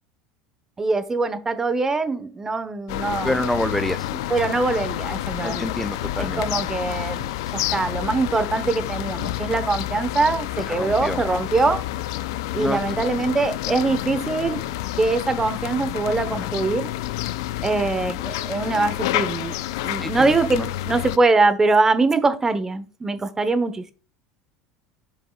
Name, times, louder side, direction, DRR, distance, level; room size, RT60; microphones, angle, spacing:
voice 1, 0.8-3.5 3.8-5.7 6.2-11.8 12.5-14.6 15.0-16.9 17.6-19.6 19.8-23.9, right 3 dB, 20° right, 1.0 m, -23 dB
sound 1, 2.9-21.2, left 14 dB, 75° left, 0.4 m, -29 dB
voice 2, 3.2-4.1 5.4-6.4 10.8-11.2 12.6-12.8 16.4-16.5 20.0-20.3, left 1 dB, 5° left, 0.3 m, -27 dB
7.7 x 5.2 x 2.3 m
hypercardioid pair, 85°, 2 cm